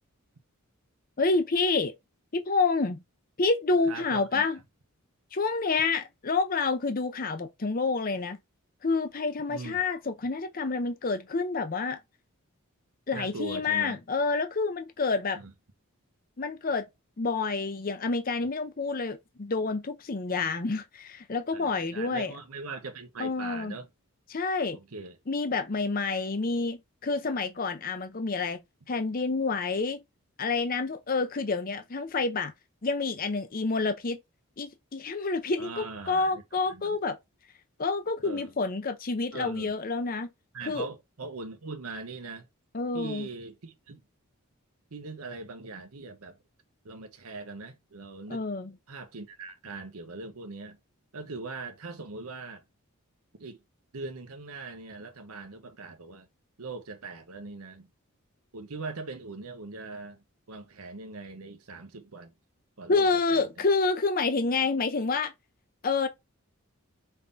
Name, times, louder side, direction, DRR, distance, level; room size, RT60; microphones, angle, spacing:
voice 1, 1.2-1.9 2.3-3.0 3.4-4.6 5.3-8.4 8.8-12.0 13.1-15.4 16.4-16.8 17.2-22.3 23.2-23.7 24.3-24.8 25.3-28.6 28.9-30.0 30.4-32.5 32.8-34.2 34.6-37.2 37.8-40.3 40.7-40.9 42.7-43.3 48.3-48.7 62.9-65.3 65.8-66.1, left 4 dB, 40° left, 0.6 m, -28 dB
voice 2, 3.9-4.5 9.5-9.8 13.1-14.0 15.4-15.5 21.5-23.9 24.7-25.2 35.6-36.4 36.7-37.0 38.2-38.5 39.3-39.8 40.5-42.5 42.9-44.0 44.9-46.4 46.8-48.4 48.9-50.8 51.1-52.6 53.4-53.6 53.9-56.3 56.6-57.9 58.5-62.3 62.8-63.4, right 3 dB, 85° right, 1.0 m, -41 dB
5.5 x 3.7 x 2.6 m
head